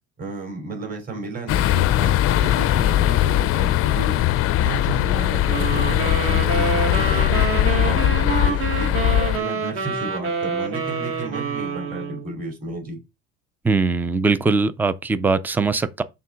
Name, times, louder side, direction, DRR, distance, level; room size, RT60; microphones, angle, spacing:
voice 1, 0.2-4.2 4.6-9.0 9.4-13.0, right 2 dB, 30° right, 3.6 m, -33 dB
sound 1, 1.5-9.4, left 13 dB, 50° left, 0.5 m, -20 dB
sound 2, 5.5-12.3, right 5 dB, 45° right, 1.6 m, -27 dB
voice 2, 13.6-16.0, right 4 dB, 5° right, 0.4 m, -21 dB
6.8 x 3.8 x 6.2 m
cardioid pair, 145°, 30 cm